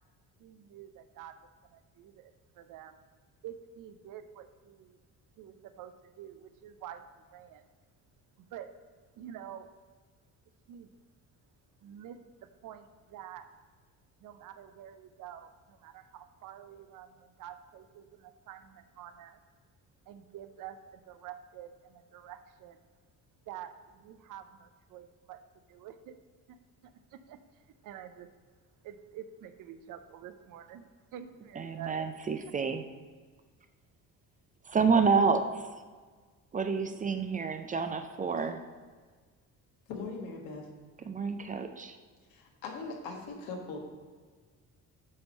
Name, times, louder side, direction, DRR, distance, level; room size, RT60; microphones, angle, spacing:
voice 1, 0.4-1.4 1.7-3.0 3.4-5.0 5.4-7.6 8.4-8.8 9.2-9.7 10.7-10.9 11.8-13.5 14.2-19.4 20.1-22.8 23.5-26.2 26.5-26.6 26.8-27.4 27.8-28.3 28.8-32.0, right 10 dB, 70° right, 10 dB, 0.6 m, -48 dB
voice 2, 31.6-32.9 34.7-35.7 36.5-38.6 41.1-42.0, right 5 dB, 25° right, 8 dB, 0.4 m, -29 dB
voice 3, 39.9-40.7 42.3-43.8, left 4 dB, 85° left, 0 dB, 1.4 m, -40 dB
8.6 x 3.1 x 5.3 m, 1.5 s
cardioid pair, 120°, 34 cm